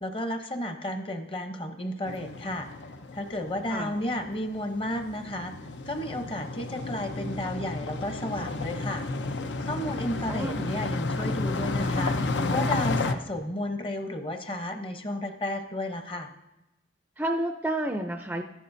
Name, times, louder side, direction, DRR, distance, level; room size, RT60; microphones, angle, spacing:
voice 1, 0.0-2.7 3.1-5.5 5.8-9.0 9.6-12.2 12.5-16.3, left 1 dB, 30° left, 6 dB, 0.8 m, -32 dB
sound 1, 2.1-13.1, left 3 dB, 85° left, 0.6 m, -32 dB
voice 2, 10.3-10.8 17.2-18.4, right 1 dB, 10° right, 5 dB, 0.4 m, -30 dB
13.0 x 11.0 x 2.6 m, 0.97 s
head